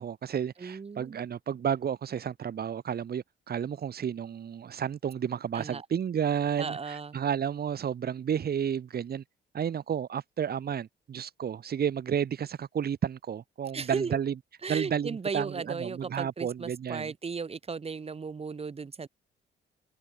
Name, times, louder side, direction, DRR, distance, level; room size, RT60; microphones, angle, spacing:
voice 1, 0.0-9.2 9.5-14.3 14.7-17.1, right 8 dB, 50° right, 2.1 m, -31 dB
voice 2, 0.6-1.2 5.5-5.8 6.6-7.2 13.7-14.2 14.6-19.1, right 5 dB, 30° right, 1.3 m, -36 dB
open air
cardioid pair, 90°, 20 cm